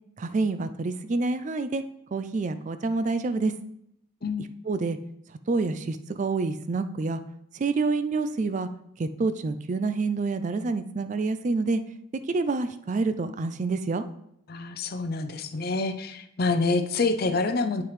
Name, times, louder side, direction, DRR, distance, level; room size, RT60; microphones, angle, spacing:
voice 1, 0.2-1.8 2.1-3.5 4.7-5.0 5.5-7.2 7.5-8.7 9.0-11.8 12.3-14.0, right 3 dB, 35° right, 10 dB, 0.4 m, -27 dB
voice 2, 4.2-4.5 14.5-17.8, left 3 dB, 50° left, 9 dB, 0.6 m, -27 dB
9.0 x 5.8 x 3.2 m, 0.75 s
head